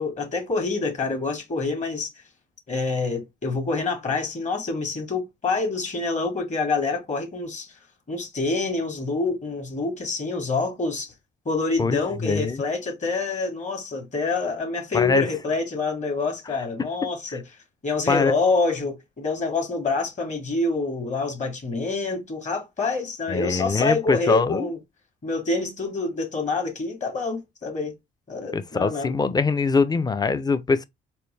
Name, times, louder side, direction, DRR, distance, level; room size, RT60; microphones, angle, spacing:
voice 1, 0.0-2.1 2.7-7.7 8.1-11.1 11.4-17.4 17.8-24.8 25.2-27.9 28.3-29.1, left 3 dB, 35° left, 1.6 m, -26 dB
voice 2, 11.8-12.6 14.9-15.3 18.1-18.3 23.3-24.7 28.5-30.8, left 4 dB, 20° left, 0.5 m, -23 dB
4.3 x 2.1 x 3.3 m
cardioid pair, 90°, 20 cm